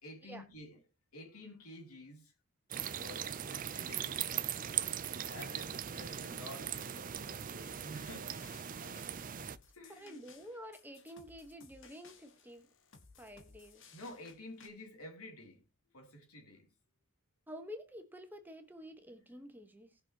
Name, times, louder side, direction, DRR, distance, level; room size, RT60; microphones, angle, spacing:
voice 1, 0.0-0.8 1.1-2.3 3.0-4.3 5.2-8.5 8.8-9.0 9.7-10.2 13.9-15.6 15.9-16.7, left 1 dB, 90° left, 3.3 m, -51 dB
sound 1, 2.7-9.6, right 9 dB, 40° right, 0.5 m, -39 dB
sound 2, 7.6-14.7, left 5 dB, 60° left, 1.5 m, -60 dB
voice 2, 10.0-12.7 13.2-13.9 17.5-20.0, equal, 10° right, 1.2 m, -49 dB
18.5 x 6.2 x 2.9 m
head